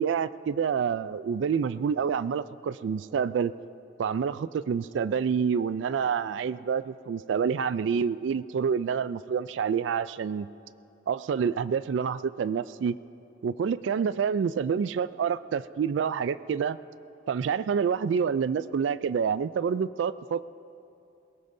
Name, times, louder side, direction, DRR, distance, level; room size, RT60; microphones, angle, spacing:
voice 1, 0.0-3.5 4.0-10.5 11.1-12.9 13.4-16.8 17.3-20.5, right 6 dB, 80° right, 14 dB, 0.3 m, -27 dB
21.5 x 18.5 x 2.7 m, 2.7 s
head